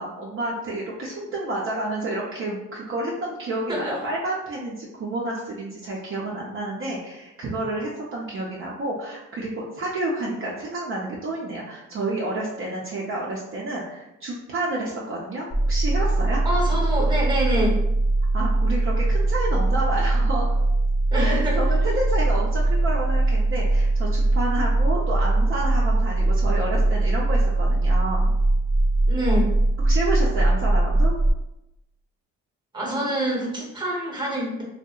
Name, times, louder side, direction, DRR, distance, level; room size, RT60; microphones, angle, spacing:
voice 1, 0.0-16.4 18.3-20.6 21.1-28.3 29.8-31.1, right 2 dB, 45° right, -4 dB, 0.5 m, -29 dB
voice 2, 3.7-4.0 16.4-17.8 21.1-21.6 29.1-29.5 32.7-34.6, equal, 15° right, -3 dB, 0.8 m, -26 dB
sound 1, 15.5-31.3, right 2 dB, 25° left, 0.7 m, -21 dB
2.7 x 2.0 x 2.3 m, 0.89 s
cardioid pair, 90°, 30 cm